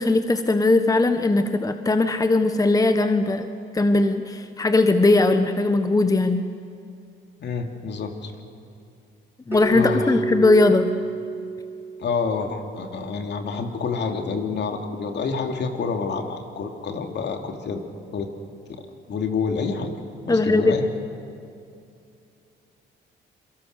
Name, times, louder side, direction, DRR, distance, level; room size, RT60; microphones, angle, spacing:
voice 1, 0.0-3.5 3.7-6.4 9.5-10.9 20.3-20.7, left 2 dB, 15° left, 8 dB, 1.2 m, -19 dB
voice 2, 7.4-8.3 9.7-10.2 12.0-17.8 18.1-18.3 19.1-19.9 20.3-20.8, left 5 dB, 60° left, 4 dB, 2.8 m, -28 dB
Keyboard (musical), 9.5-12.3, right 1 dB, 10° right, 3.0 m, -29 dB
26.5 x 23.5 x 6.7 m, 2.6 s
cardioid pair, 90°, 20 cm